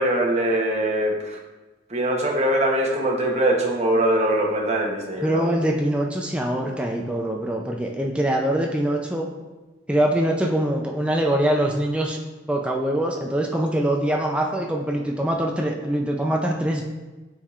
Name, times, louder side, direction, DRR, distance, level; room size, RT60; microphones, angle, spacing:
voice 1, 0.0-1.4 1.9-5.5, right 1 dB, 35° right, 0 dB, 0.9 m, -22 dB
voice 2, 5.2-9.3 9.9-12.2 12.5-16.8, right 1 dB, 5° right, 0 dB, 0.4 m, -23 dB
8.5 x 4.6 x 2.4 m, 1.2 s
head